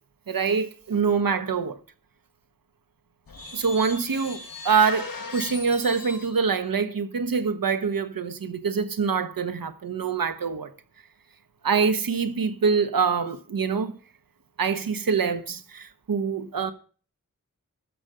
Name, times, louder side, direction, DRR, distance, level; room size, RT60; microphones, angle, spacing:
voice 1, 0.3-1.8 3.5-10.7 11.6-13.9 14.6-16.7, right 5 dB, 80° right, 1.3 m, -25 dB
sound 1, 3.3-6.4, left 4 dB, 85° left, 2.0 m, -38 dB
13.5 x 5.3 x 7.5 m
wide cardioid pair, 75°, 34 cm